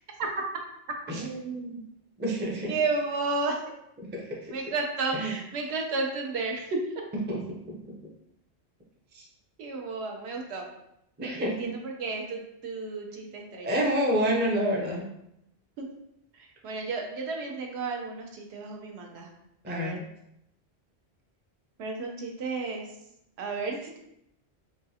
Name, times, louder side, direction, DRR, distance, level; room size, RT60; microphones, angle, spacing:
voice 1, 1.1-1.8 2.2-2.7 4.1-4.5 5.1-5.3 7.3-7.7 9.1-9.2 11.2-11.7 13.6-15.1 19.6-20.0, equal, 15° right, -3 dB, 0.4 m, -29 dB
voice 2, 2.7-3.6 4.5-6.8 9.6-10.7 11.2-13.8 15.8-15.9 16.3-19.3 19.7-20.0 21.8-22.9 23.4-24.0, right 3 dB, 75° right, 1 dB, 0.9 m, -32 dB
4.0 x 2.3 x 2.7 m, 0.79 s
omnidirectional pair, 1.1 m